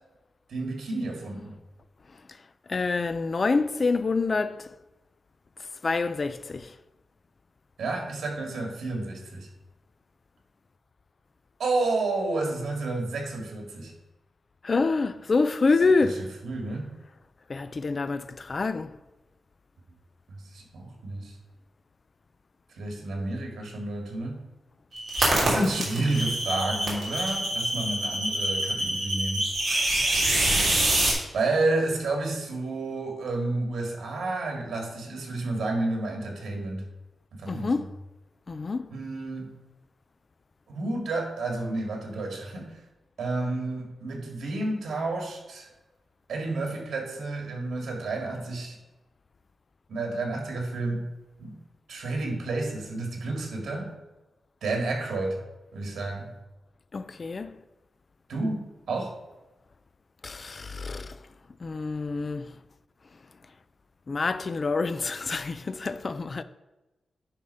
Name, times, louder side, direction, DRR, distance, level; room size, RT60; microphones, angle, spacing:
voice 1, 0.5-1.6 7.8-9.5 11.6-13.9 16.0-16.9 20.5-21.3 22.8-24.4 25.4-29.5 31.3-36.9 37.3-37.8 38.9-39.5 40.7-42.7 43.2-45.7 46.3-48.8 49.9-51.1 51.4-51.6 51.9-53.9 54.6-55.4 55.7-56.3 58.3-59.1, right 2 dB, 75° right, 1.9 m, -30 dB
voice 2, 2.7-4.7 5.8-6.7 14.6-16.3 17.5-19.0 37.5-37.9 38.5-38.9 56.9-57.6 60.2-61.2 61.6-62.6 64.1-66.4, left 4 dB, 30° left, 0.3 m, -27 dB
sound 1, 24.9-31.1, right 1 dB, 35° right, 2.9 m, -26 dB
10.0 x 3.6 x 5.5 m
wide cardioid pair, 170°, 0 cm